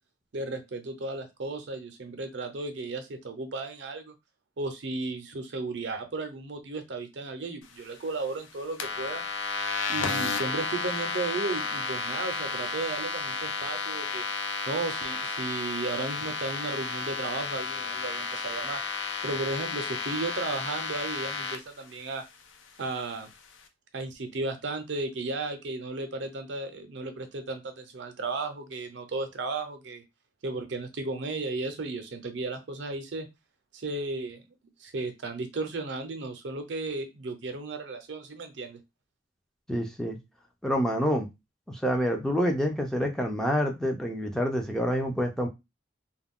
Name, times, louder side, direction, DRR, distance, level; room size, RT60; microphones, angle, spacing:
voice 1, 0.3-4.1 4.6-9.2 9.9-14.2 14.7-18.8 19.2-22.2 22.8-23.3 23.9-30.0 30.4-33.3 33.7-34.4 34.8-38.8, right 3 dB, 65° right, 7 dB, 0.6 m, -34 dB
sound 1, 8.8-21.6, left 4 dB, 85° left, 0.5 m, -32 dB
voice 2, 39.7-40.2 40.6-41.3 41.7-45.5, equal, 5° left, 2 dB, 0.4 m, -27 dB
2.3 x 2.1 x 3.5 m, 0.23 s
head